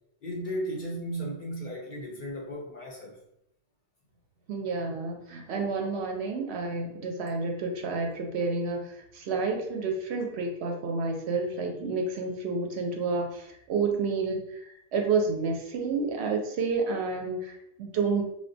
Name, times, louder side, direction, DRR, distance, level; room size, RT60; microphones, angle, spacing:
voice 1, 0.2-3.2, right 1 dB, 55° left, -2 dB, 0.6 m, -35 dB
voice 2, 4.5-18.2, right 4 dB, 70° right, 2 dB, 0.8 m, -30 dB
3.6 x 2.1 x 2.6 m, 0.79 s
omnidirectional pair, 1.2 m